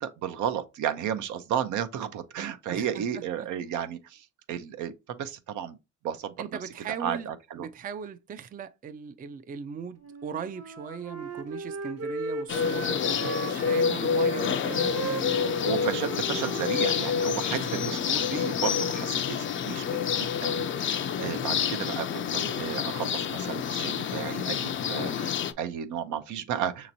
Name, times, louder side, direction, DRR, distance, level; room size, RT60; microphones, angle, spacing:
voice 1, 0.0-5.8 6.0-6.5 7.0-7.7 15.4-17.6 17.8-26.9, right 9 dB, 75° right, 0.6 m, -33 dB
voice 2, 2.7-3.5 6.4-7.3 7.6-15.4 17.5-17.9, right 7 dB, 30° right, 0.4 m, -38 dB
Wind instrument woodwind instrument, 10.0-13.9 14.2-18.5, right 3 dB, 55° right, 0.9 m, -37 dB
sound 1, 12.5-25.5, left 7 dB, 40° left, 0.4 m, -28 dB
5.9 x 2.9 x 2.6 m
cardioid pair, 90°, 30 cm